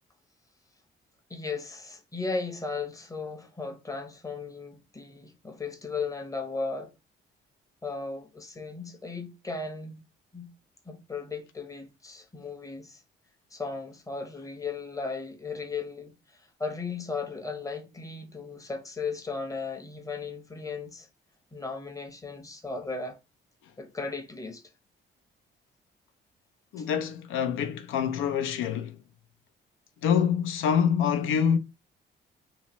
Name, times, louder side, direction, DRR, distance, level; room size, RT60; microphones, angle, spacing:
voice 1, 1.3-6.9 7.8-10.0 10.3-10.5 10.8-13.0 13.5-21.1 21.5-23.2 23.8-24.6 26.8-26.9, left 4 dB, 15° left, 0.7 m, -36 dB
voice 2, 26.7-29.0 30.0-31.6, left 7 dB, 85° left, 0.5 m, -26 dB
2.8 x 2.1 x 2.9 m
cardioid pair, 90°, 20 cm